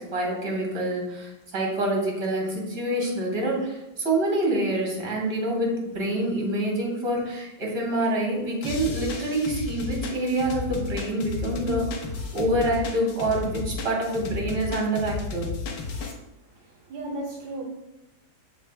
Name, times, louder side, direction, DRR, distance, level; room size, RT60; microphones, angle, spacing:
voice 1, 0.0-11.9 12.3-15.5, right 1 dB, 45° right, -1 dB, 3.1 m, -26 dB
sound 1, 8.6-16.1, left 4 dB, 65° left, 1.5 m, -33 dB
voice 2, 16.4-17.6, right 1 dB, 80° right, -3 dB, 1.9 m, -35 dB
13.0 x 4.4 x 2.2 m, 0.95 s
omnidirectional pair, 2.2 m